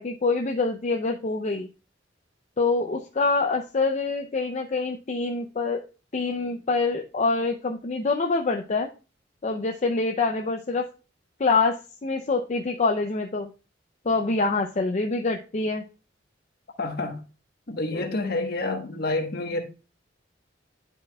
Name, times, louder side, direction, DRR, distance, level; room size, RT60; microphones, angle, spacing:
voice 1, 0.0-1.7 2.6-5.8 6.1-8.9 9.4-10.9 11.4-13.5 14.1-15.8 17.9-18.1, left 3 dB, 40° left, 0.5 m, -25 dB
voice 2, 16.8-17.2 17.7-19.6, left 2 dB, 60° left, 1.3 m, -28 dB
10.5 x 4.8 x 2.3 m
head